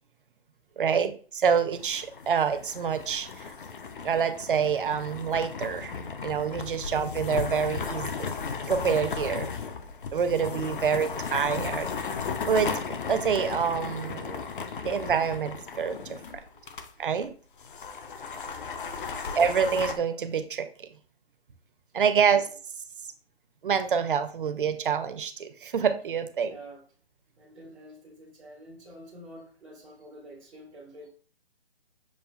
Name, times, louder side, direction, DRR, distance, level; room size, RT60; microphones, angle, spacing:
voice 1, 0.8-3.3 4.0-8.3 8.7-9.5 10.1-11.9 12.5-12.7 13.1-14.4 14.8-16.2 17.0-17.3 19.4-20.7 21.9-22.5 23.6-26.6, right 7 dB, 55° right, 10 dB, 0.6 m, -27 dB
sound 1, 1.7-16.9 17.2-17.3 17.6-20.0, left 5 dB, 55° left, 0.5 m, -35 dB
voice 2, 18.4-19.2 26.4-26.8 27.4-31.1, right 1 dB, ahead, -12 dB, 0.5 m, -49 dB
7.1 x 2.4 x 2.3 m, 0.42 s
figure-of-eight pair, 155°, 32 cm